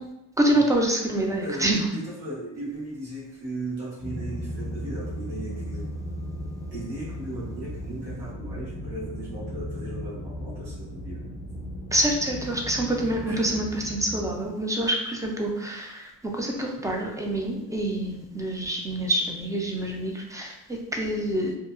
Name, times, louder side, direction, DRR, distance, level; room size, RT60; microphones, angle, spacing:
voice 1, 0.4-1.9 11.9-21.5, right 1 dB, 10° right, 0 dB, 0.3 m, -26 dB
voice 2, 1.4-5.9 6.7-11.2 13.3-13.4, right 1 dB, 85° right, -7 dB, 1.3 m, -37 dB
sound 1, 4.0-14.3, equal, 40° left, 0.6 m, -36 dB
2.7 x 2.2 x 2.4 m, 0.87 s
cardioid pair, 115°, 38 cm